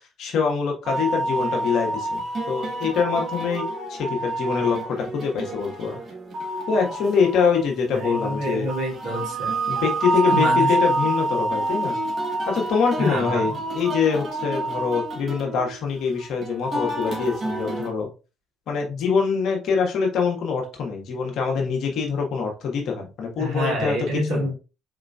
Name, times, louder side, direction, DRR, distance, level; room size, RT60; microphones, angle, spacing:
voice 1, 0.2-6.0 6.7-8.7 9.7-12.0 12.5-18.1 18.7-24.0 24.3-24.5, left 6 dB, 65° left, 1 dB, 1.3 m, -24 dB
sound 1, 0.8-17.9, right 2 dB, 50° right, 1.6 m, -28 dB
voice 2, 7.9-9.6 10.2-10.8 13.0-13.6 23.4-24.5, right 1 dB, 65° right, -4 dB, 2.4 m, -27 dB
4.3 x 3.8 x 2.3 m, 0.31 s
hypercardioid pair, 55°, 0 cm